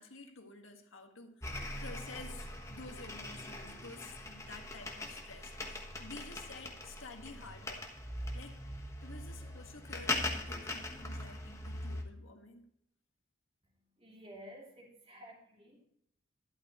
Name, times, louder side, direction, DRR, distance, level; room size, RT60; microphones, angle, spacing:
voice 1, 0.0-7.9 8.3-8.6 9.0-12.7, left 3 dB, 80° left, 5 dB, 1.7 m, -51 dB
sound 1, 1.4-12.0, left 2 dB, 15° left, 1.3 m, -41 dB
voice 2, 13.7-15.9, equal, 30° right, -1 dB, 2.9 m, -53 dB
12.0 x 11.5 x 3.0 m, 0.74 s
head